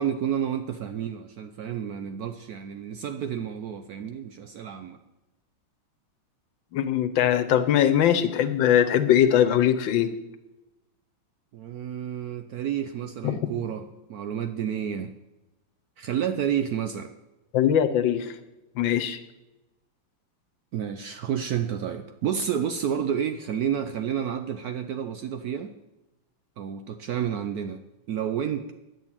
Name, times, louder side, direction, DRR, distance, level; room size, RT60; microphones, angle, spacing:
voice 1, 0.0-5.0 11.5-15.1 16.0-17.1 20.7-25.7 26.6-27.8 28.1-28.7, right 9 dB, 80° right, 8 dB, 0.8 m, -30 dB
voice 2, 6.7-10.1 13.2-13.4 17.5-18.3 18.8-19.2, left 10 dB, 70° left, 10 dB, 1.5 m, -21 dB
10.5 x 6.4 x 8.8 m, 1.0 s
omnidirectional pair, 2.3 m